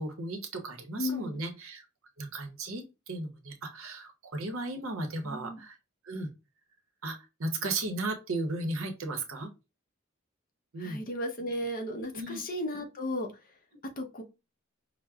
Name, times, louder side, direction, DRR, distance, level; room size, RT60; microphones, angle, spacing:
voice 1, 0.0-1.9 2.2-5.8 6.0-6.3 7.0-9.5 10.7-11.0 12.1-12.4, right 2 dB, 70° right, 6 dB, 0.8 m, -35 dB
voice 2, 1.0-1.4 5.2-5.6 10.8-13.3 14.0-14.2, left 1 dB, 45° left, 3 dB, 0.7 m, -34 dB
5.7 x 2.1 x 2.3 m, 0.27 s
head